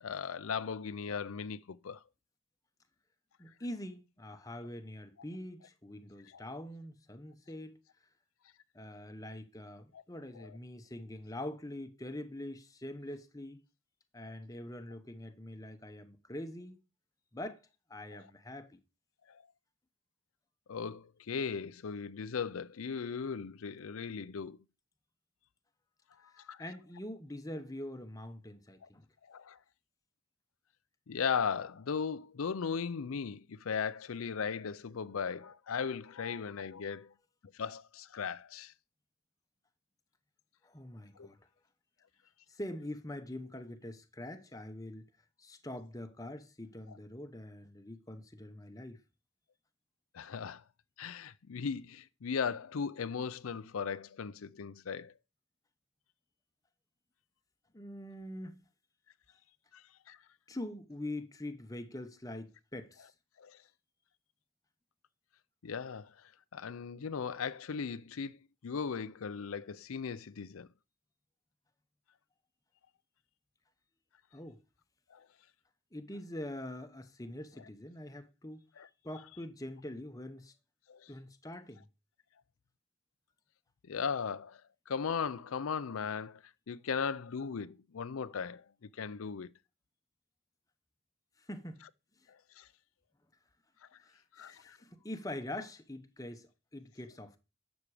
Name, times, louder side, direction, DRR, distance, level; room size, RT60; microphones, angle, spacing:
voice 1, 0.0-2.0 6.3-6.4 9.9-10.0 10.4-10.6 18.1-18.2 19.3-19.4 20.7-24.6 26.5-26.6 28.8-28.9 29.3-29.6 31.1-37.1 37.5-38.7 41.2-41.3 46.9-47.0 50.1-50.6 51.0-55.1 59.7-60.2 63.4-63.6 65.6-68.4 68.6-70.7 75.1-75.2 78.8-78.9 80.9-81.1 83.9-84.6 84.9-89.5 92.6-92.7 93.9-94.0 94.3-94.8, left 6 dB, 75° left, 0.5 m, -37 dB
voice 2, 3.4-7.8 8.7-13.6 14.1-16.8 17.3-17.6 17.9-18.8 26.3-29.1 40.6-41.4 42.5-45.1 45.4-49.0 57.7-58.6 60.5-63.1 74.3-74.6 75.9-78.6 79.0-80.5 81.1-81.9 91.4-91.8 94.0-97.4, left 1 dB, 15° left, 0.9 m, -44 dB
12.0 x 7.2 x 4.9 m
head